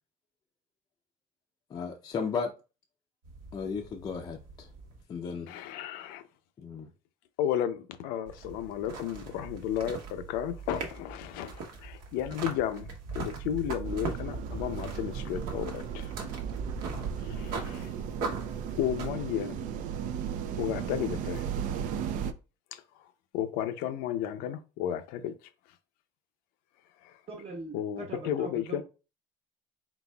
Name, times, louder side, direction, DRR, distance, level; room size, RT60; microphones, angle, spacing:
voice 1, 1.7-2.5 3.5-4.7 5.1-5.5 6.6-6.9, left 5 dB, 25° left, 0.5 m, -34 dB
sound 1, 3.2-5.0 8.3-19.1, right 4 dB, 75° right, 1.2 m, -40 dB
voice 2, 5.5-6.2 7.4-16.1 17.2-17.9 18.8-19.6 20.6-21.5 22.7-22.8 23.3-25.3 27.0-27.1 27.7-28.8, left 10 dB, 80° left, 0.6 m, -33 dB
sound 2, 13.8-22.3, right 8 dB, 55° right, 0.4 m, -35 dB
voice 3, 27.3-28.8, right 2 dB, 40° right, 1.1 m, -41 dB
4.2 x 4.0 x 2.3 m
cardioid pair, 155°, 15 cm